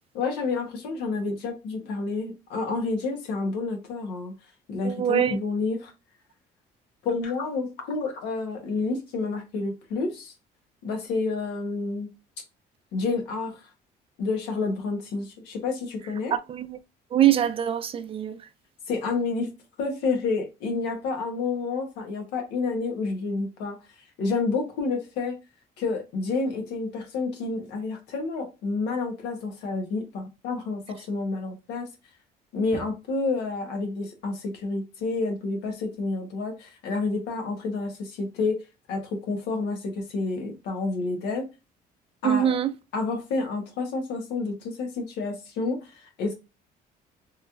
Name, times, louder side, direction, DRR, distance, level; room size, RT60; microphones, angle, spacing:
voice 1, 0.1-4.3 4.7-5.9 7.0-10.3 10.8-12.1 12.9-13.6 14.2-16.3 18.9-19.5 19.8-23.8 24.2-25.4 25.8-31.9 32.5-38.6 38.9-41.5 42.2-42.5 42.9-46.3, left 3 dB, 90° left, 1.1 m, -29 dB
voice 2, 4.8-5.4 16.3-16.8 17.1-18.4 42.2-42.7, right 10 dB, 35° right, 0.5 m, -23 dB
3.1 x 3.0 x 2.4 m
cardioid pair, 110°, 17 cm